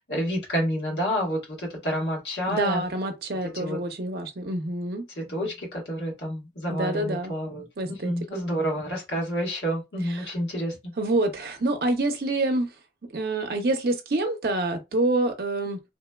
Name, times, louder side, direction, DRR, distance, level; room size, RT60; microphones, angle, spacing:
voice 1, 0.1-2.8 3.5-3.8 5.2-7.6 8.0-10.8, equal, 85° left, 1.3 m, -29 dB
voice 2, 2.5-5.0 6.7-7.3 7.8-8.4 10.1-10.3 11.0-12.7 13.1-15.8, right 2 dB, 55° right, 0.5 m, -27 dB
3.0 x 2.1 x 2.2 m
head